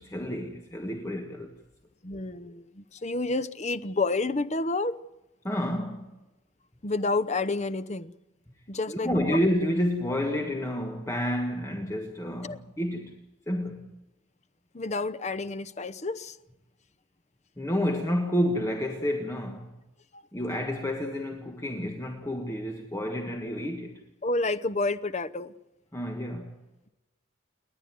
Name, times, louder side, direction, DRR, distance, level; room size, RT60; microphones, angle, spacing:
voice 1, 0.0-1.5 5.4-6.1 8.9-13.9 17.6-19.8 20.3-24.0 25.9-26.7, equal, 15° left, 1.5 m, -30 dB
voice 2, 2.0-5.0 6.8-8.1 8.7-9.4 12.4-12.6 14.7-16.4 20.1-20.2 24.2-25.5, left 3 dB, 35° left, 0.7 m, -29 dB
29.0 x 11.0 x 9.4 m
head